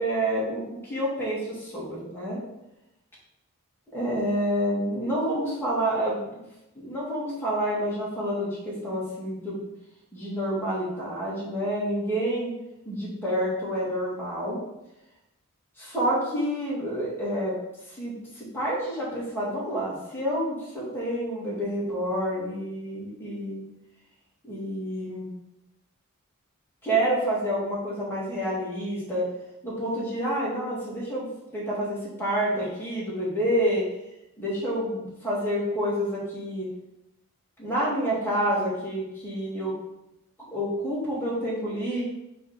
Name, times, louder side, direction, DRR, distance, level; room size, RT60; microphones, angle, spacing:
voice 1, 0.0-2.4 3.9-6.3 6.8-9.7 10.1-12.5 12.9-14.6 15.8-17.5 17.9-23.6 24.5-25.3 26.8-29.3 29.6-31.3 31.5-33.8 34.4-36.7 37.6-39.7 40.5-42.0, equal, 10° left, -7 dB, 2.3 m, -28 dB
5.7 x 3.4 x 5.8 m, 0.90 s
head